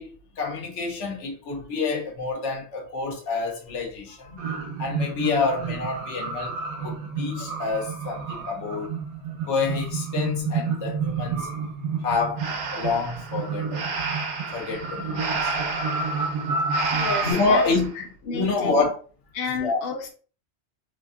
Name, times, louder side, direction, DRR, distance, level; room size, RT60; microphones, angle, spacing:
voice 1, 0.0-4.4 4.8-6.5 6.8-8.9 9.5-11.5 12.0-12.4 12.7-13.9 14.5-15.5 17.2-17.9 18.2-18.9 19.6-19.8, left 4 dB, 90° left, 1.1 m, -27 dB
sound 1, 4.4-17.3, right 5 dB, 75° right, 1.1 m, -30 dB
Breathing, 12.4-17.9, right 4 dB, 55° right, 0.7 m, -31 dB
voice 2, 16.9-17.6 18.0-18.9 19.3-20.1, left 4 dB, 60° left, 0.8 m, -31 dB
2.8 x 2.5 x 2.4 m
omnidirectional pair, 1.2 m